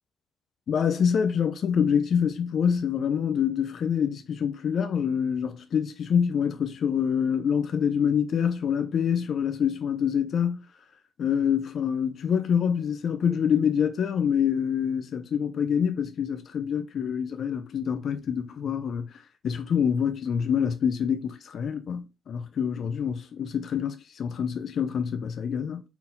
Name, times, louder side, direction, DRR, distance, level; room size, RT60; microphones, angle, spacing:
voice 1, 0.7-10.6 11.2-19.2 19.4-25.8, left 7 dB, 60° left, 0.6 m, -26 dB
4.4 x 4.0 x 5.4 m
cardioid pair, 90°, 0 cm